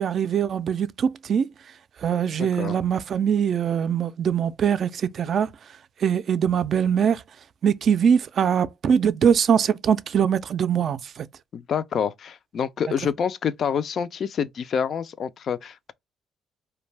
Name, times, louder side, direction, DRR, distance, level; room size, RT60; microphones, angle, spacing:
voice 1, 0.0-1.5 2.0-5.5 6.0-7.2 7.6-11.3, right 8 dB, 55° right, 0.3 m, -22 dB
voice 2, 2.4-2.8 11.5-15.9, left 7 dB, 55° left, 0.3 m, -27 dB
2.6 x 2.2 x 3.2 m
cardioid pair, 85°, 0 cm